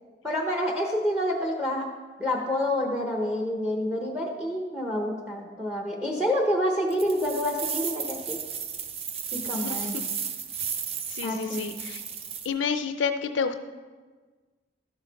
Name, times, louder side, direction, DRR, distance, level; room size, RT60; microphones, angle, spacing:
voice 1, 0.2-1.9 2.2-8.4 9.3-10.0 11.2-11.8, left 1 dB, 5° right, 1 dB, 0.8 m, -28 dB
sound 1, 6.9-12.5, right 7 dB, 35° right, 0.5 m, -34 dB
voice 2, 9.6-10.1 11.1-12.0 12.4-13.6, left 6 dB, 90° left, 9 dB, 0.5 m, -30 dB
12.0 x 6.4 x 4.0 m, 1.4 s
head